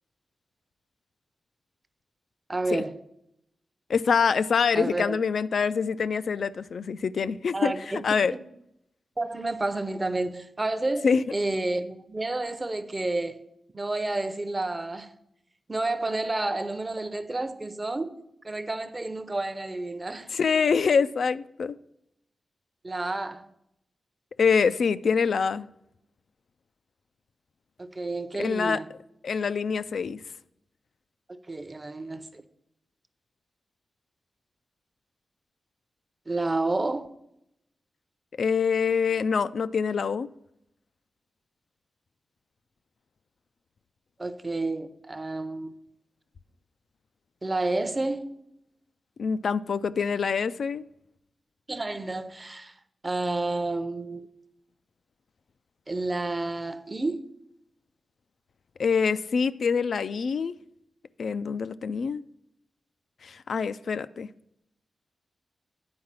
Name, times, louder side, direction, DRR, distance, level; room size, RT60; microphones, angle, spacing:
voice 1, 2.5-3.0 4.7-5.2 7.5-8.4 9.2-13.4 13.7-15.1 15.7-20.3 22.8-23.4 27.8-28.9 31.3-32.4 36.3-37.1 44.2-45.7 47.4-48.4 51.7-52.7 53.0-54.3 55.9-57.2, right 2 dB, 20° right, 0.6 m, -30 dB
voice 2, 3.9-8.3 11.0-11.3 20.3-21.8 24.4-25.7 28.4-28.8 29.2-30.2 38.4-40.3 49.2-50.8 58.8-60.5 61.2-62.2 63.2-64.3, left 6 dB, 70° left, 0.3 m, -25 dB
9.6 x 4.7 x 7.4 m
wide cardioid pair, 145°, 0 cm